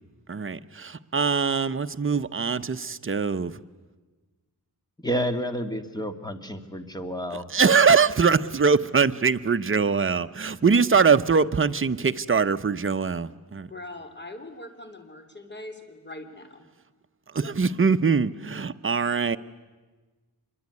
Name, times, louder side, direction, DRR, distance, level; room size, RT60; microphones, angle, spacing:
voice 1, 0.3-3.5 7.3-13.7 17.3-19.4, right 5 dB, 35° right, 11 dB, 0.8 m, -22 dB
voice 2, 5.0-7.4, equal, 10° left, 8 dB, 2.0 m, -30 dB
voice 3, 13.7-16.6, left 2 dB, 30° left, 7 dB, 3.2 m, -41 dB
26.0 x 22.5 x 9.7 m, 1.3 s
wide cardioid pair, 110°, 37 cm